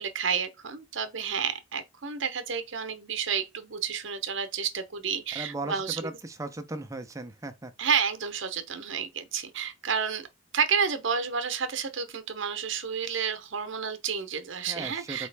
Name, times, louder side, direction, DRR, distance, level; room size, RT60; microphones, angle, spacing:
voice 1, 0.0-6.1 7.8-10.2 10.5-15.3, right 6 dB, 65° right, 0.8 m, -30 dB
voice 2, 5.4-7.7 14.7-15.3, right 2 dB, 15° right, 0.5 m, -37 dB
4.2 x 3.0 x 3.3 m
head